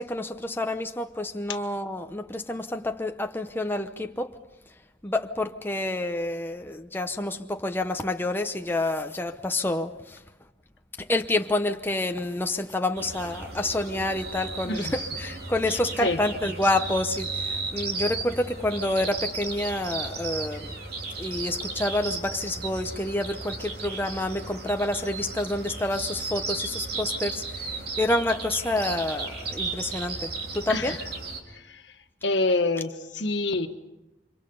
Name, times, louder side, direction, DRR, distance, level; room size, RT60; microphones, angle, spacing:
voice 1, 0.0-4.4 5.0-10.2 11.1-20.8 21.2-31.0, left 1 dB, 10° left, 0.8 m, -28 dB
sound 1, 12.9-31.4, right 3 dB, 55° right, 3.6 m, -35 dB
voice 2, 32.2-33.7, left 2 dB, 75° left, 1.6 m, -26 dB
30.0 x 25.5 x 5.5 m
head